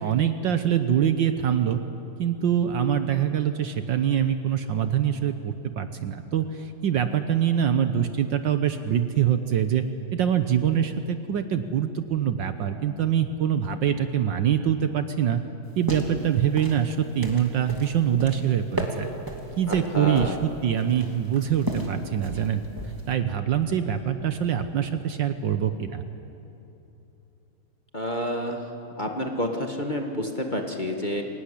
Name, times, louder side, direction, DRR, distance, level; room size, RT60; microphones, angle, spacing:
voice 1, 0.0-1.8 2.2-9.8 10.1-15.4 15.8-19.1 19.6-22.6 23.1-26.0, right 9 dB, 65° right, 9 dB, 1.4 m, -24 dB
sound 1, 15.6-23.1, right 1 dB, 10° right, 2.3 m, -35 dB
voice 2, 19.7-20.4 27.9-28.6 29.0-31.2, equal, 25° left, 2 dB, 1.6 m, -29 dB
25.0 x 16.5 x 9.9 m, 2.9 s
omnidirectional pair, 2.4 m